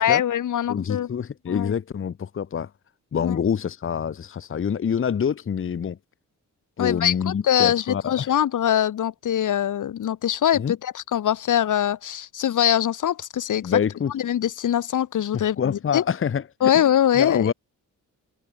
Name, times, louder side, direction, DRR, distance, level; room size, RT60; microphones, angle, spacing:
voice 1, 0.0-1.1 1.5-1.7 3.2-3.4 6.8-13.8 14.1-16.0 16.6-17.5, left 10 dB, 70° left, 1.2 m, -23 dB
voice 2, 0.7-2.7 3.1-6.0 6.8-8.3 10.5-10.7 13.6-14.1 15.3-16.7 17.2-17.5, left 7 dB, 40° left, 0.9 m, -26 dB
cardioid pair, 105°, 32 cm